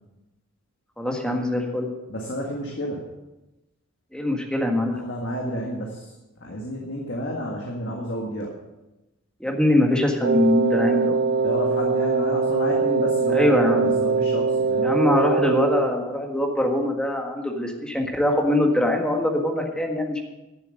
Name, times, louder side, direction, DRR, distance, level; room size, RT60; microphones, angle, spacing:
voice 1, 1.0-1.9 4.1-4.9 9.4-11.2 13.3-13.9 14.8-20.2, left 1 dB, 5° left, 1 dB, 1.6 m, -22 dB
voice 2, 2.1-3.0 4.9-6.1 6.4-8.5 11.4-15.0, equal, 55° left, -1 dB, 1.8 m, -30 dB
Wind instrument woodwind instrument, 10.2-15.9, right 4 dB, 50° right, 0.4 m, -22 dB
11.5 x 7.5 x 7.7 m, 1.0 s
head